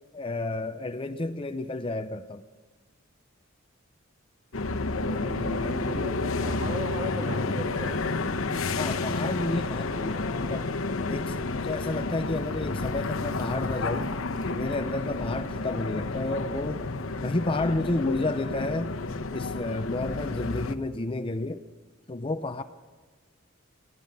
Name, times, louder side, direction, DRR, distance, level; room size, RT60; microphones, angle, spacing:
voice 1, 0.1-2.4 8.8-10.7 11.1-14.1 14.5-16.9 17.2-18.9 19.3-21.6 22.1-22.6, left 2 dB, 25° left, 9 dB, 0.5 m, -31 dB
sound 1, 4.5-20.7, left 3 dB, 80° left, 1.0 m, -30 dB
voice 2, 4.9-8.0, equal, 30° right, 2 dB, 3.0 m, -37 dB
24.0 x 16.5 x 6.6 m, 1.4 s
head